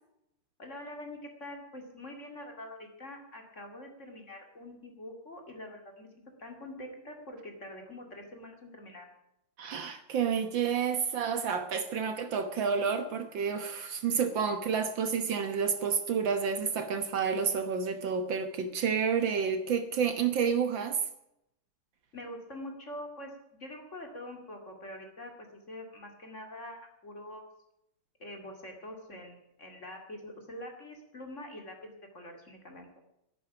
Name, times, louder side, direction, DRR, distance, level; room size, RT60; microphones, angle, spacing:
voice 1, 0.6-6.1 6.4-9.1 22.1-23.3 23.6-25.3 25.7-27.5 28.2-32.9, left 1 dB, 35° left, 3 dB, 2.6 m, -45 dB
voice 2, 9.6-21.0, right 6 dB, 65° right, 9 dB, 1.8 m, -30 dB
11.0 x 9.9 x 10.0 m, 0.81 s
omnidirectional pair, 2.4 m